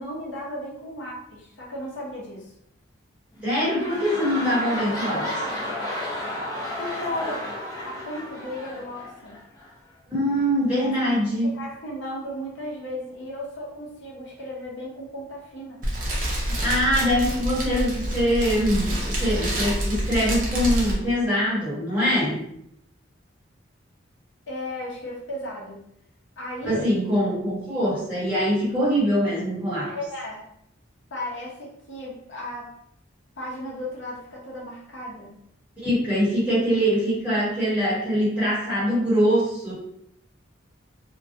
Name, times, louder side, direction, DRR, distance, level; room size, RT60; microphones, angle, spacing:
voice 1, 0.0-2.5 5.0-5.5 6.8-7.4 7.9-9.4 10.8-10.9 11.4-15.8 24.5-25.8 26.4-26.8 29.9-30.4 31.1-32.7 33.4-35.3, left 1 dB, 70° left, -4 dB, 0.7 m, -35 dB
sound 1, 3.3-9.7 10.4-10.5, left 1 dB, 20° left, 0.7 m, -32 dB
voice 2, 3.4-5.2 10.1-11.6 16.5-22.4 26.6-29.9 35.8-39.7, equal, 10° right, -10 dB, 1.1 m, -23 dB
Fire, 15.8-20.9, equal, 45° right, 0.6 m, -27 dB
2.2 x 2.1 x 2.7 m, 0.76 s
head